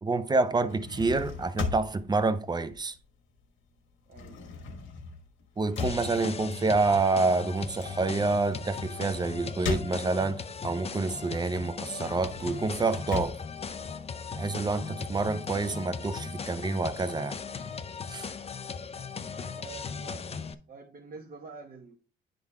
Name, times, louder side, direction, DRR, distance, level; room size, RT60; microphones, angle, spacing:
voice 1, 0.0-2.9 5.6-13.4 14.4-17.4 18.1-18.3, right 3 dB, 20° right, 0.6 m, -28 dB
sound 1, 0.5-3.4 3.7-10.5 11.0-14.5, left 5 dB, 80° left, 1.4 m, -38 dB
voice 2, 4.1-4.5 19.4-22.0, right 5 dB, 45° right, 1.1 m, -47 dB
sound 2, 5.8-20.5, left 5 dB, 30° left, 0.5 m, -38 dB
9.7 x 3.9 x 3.5 m
cardioid pair, 90°, 20 cm